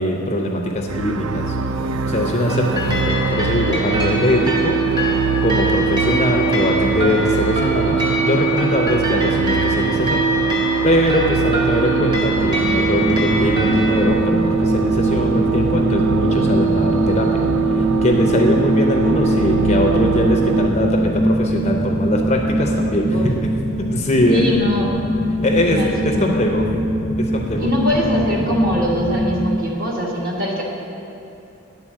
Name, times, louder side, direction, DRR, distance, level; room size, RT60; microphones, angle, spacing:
voice 1, 0.0-1.6 2.1-4.7 5.4-10.2 10.8-17.4 17.8-23.5 23.9-24.5 25.4-25.8 26.0-26.6 27.2-27.7, left 1 dB, 30° left, 1 dB, 0.6 m, -21 dB
sound 1, 0.9-20.7, right 6 dB, 70° right, 0.4 m, -21 dB
sound 2, 2.5-14.1, left 1 dB, 20° right, 0.8 m, -26 dB
sound 3, 11.4-29.3, equal, 85° right, 1.8 m, -23 dB
voice 2, 24.3-25.0 25.6-26.3 27.6-30.6, equal, 40° right, -3 dB, 1.4 m, -22 dB
10.0 x 4.0 x 7.3 m, 2.7 s
head